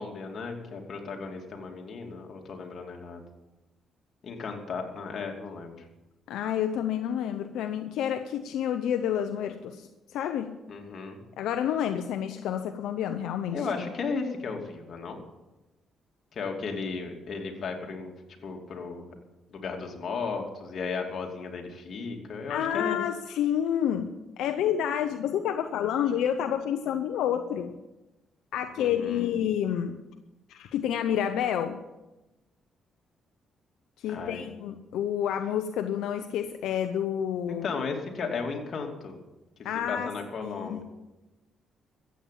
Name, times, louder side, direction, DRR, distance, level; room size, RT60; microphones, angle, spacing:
voice 1, 0.0-3.3 4.2-5.9 10.7-11.2 13.5-15.2 16.3-18.1 18.4-19.1 19.5-23.0 28.8-29.3 34.1-34.5 37.5-39.2 39.9-40.8, left 4 dB, 55° left, 2 dB, 2.8 m, -35 dB
voice 2, 6.3-10.5 11.4-13.7 22.5-27.7 28.5-30.0 30.5-31.8 34.0-37.7 39.6-40.1 40.4-40.8, left 9 dB, 85° left, 8 dB, 0.8 m, -29 dB
14.5 x 8.7 x 8.5 m, 1.0 s
cardioid pair, 90°, 0 cm